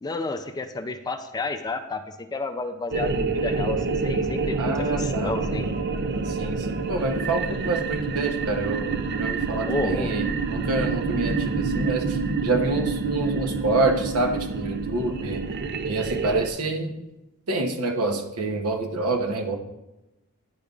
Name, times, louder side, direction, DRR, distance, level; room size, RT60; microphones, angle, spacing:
voice 1, 0.0-5.7 9.7-10.1, left 3 dB, 20° left, 7 dB, 0.4 m, -31 dB
sound 1, 2.9-16.5, right 4 dB, 50° right, 0.4 m, -27 dB
voice 2, 4.6-5.4 6.2-15.4 15.8-16.9 17.5-19.6, right 2 dB, 80° right, 5 dB, 0.9 m, -27 dB
9.6 x 5.1 x 2.4 m, 0.96 s
head